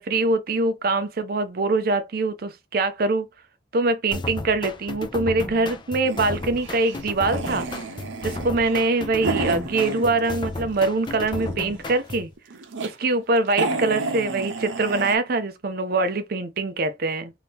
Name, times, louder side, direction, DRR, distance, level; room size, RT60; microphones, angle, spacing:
voice 1, 0.0-3.3 3.7-7.7 8.2-12.3 12.8-17.3, right 3 dB, 50° right, 0.5 m, -23 dB
sound 1, 4.1-12.3, left 2 dB, 25° left, 0.4 m, -34 dB
sound 2, 6.0-10.6 11.0-11.8 12.4-12.9 13.2-13.3 13.5-15.2, right 3 dB, 85° right, 0.8 m, -31 dB
2.8 x 2.7 x 3.4 m
head